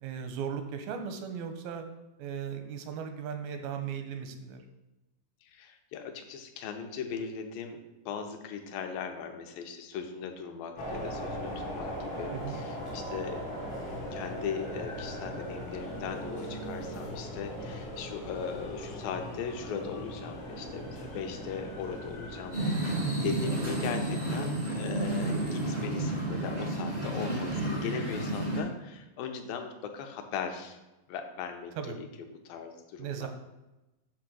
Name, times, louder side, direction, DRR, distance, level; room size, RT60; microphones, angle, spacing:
voice 1, 0.0-1.9 2.2-4.6 12.3-12.6 23.0-23.3 31.8-32.0 33.0-33.3, right 7 dB, 85° right, 6 dB, 2.6 m, -37 dB
voice 2, 5.4-13.4 13.8-30.8 31.1-33.3, left 6 dB, 80° left, 5 dB, 2.4 m, -39 dB
sound 1, 10.8-22.7, equal, 60° left, 1.1 m, -39 dB
sound 2, 22.5-28.6, right 1 dB, 45° right, 0.6 m, -31 dB
7.9 x 3.6 x 6.1 m, 1.0 s
omnidirectional pair, 4.2 m